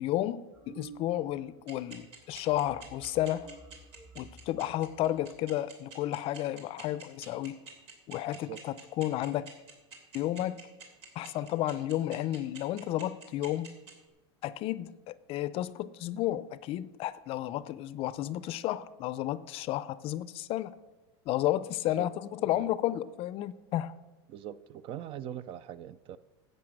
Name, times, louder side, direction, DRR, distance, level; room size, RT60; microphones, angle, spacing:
voice 1, 0.0-3.5 4.2-7.6 8.1-9.5 10.1-10.6 11.2-13.7 14.4-20.7 21.3-23.9, left 14 dB, 45° left, 0.5 m, -32 dB
sound 1, 0.5-1.5 1.8-2.1 2.3-5.5, right 4 dB, 20° right, 1.0 m, -53 dB
sound 2, 1.7-13.9, right 6 dB, 75° right, 3.1 m, -47 dB
voice 2, 24.3-26.2, right 11 dB, 40° right, 0.5 m, -42 dB
11.0 x 8.1 x 6.4 m
supercardioid pair, 130°, 14 cm